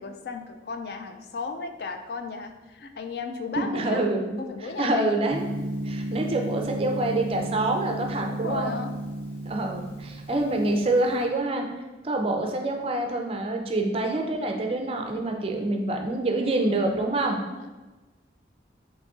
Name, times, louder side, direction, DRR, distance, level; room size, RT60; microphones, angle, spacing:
voice 1, 0.0-4.0 4.4-5.2 8.3-8.9 17.3-17.7, left 4 dB, 60° left, 6 dB, 0.3 m, -35 dB
voice 2, 3.6-4.4 4.8-5.4 5.8-8.8 9.4-11.7 12.0-17.4, right 2 dB, 30° right, 3 dB, 0.4 m, -26 dB
Gong, 5.3-11.2, right 1 dB, 85° left, 1.4 m, -33 dB
3.8 x 2.9 x 3.6 m, 1.2 s
head